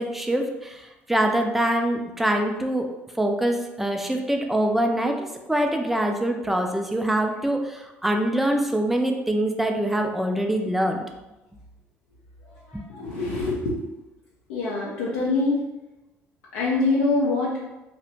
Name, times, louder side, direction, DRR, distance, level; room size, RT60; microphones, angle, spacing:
voice 1, 0.0-2.9 3.2-11.0 12.7-12.8, right 1 dB, 5° right, 3 dB, 0.3 m, -24 dB
voice 2, 12.9-13.7 14.5-15.6 16.5-17.6, left 3 dB, 65° left, -6 dB, 0.4 m, -24 dB
2.7 x 2.1 x 2.8 m, 1.0 s
figure-of-eight pair, 50°, 7 cm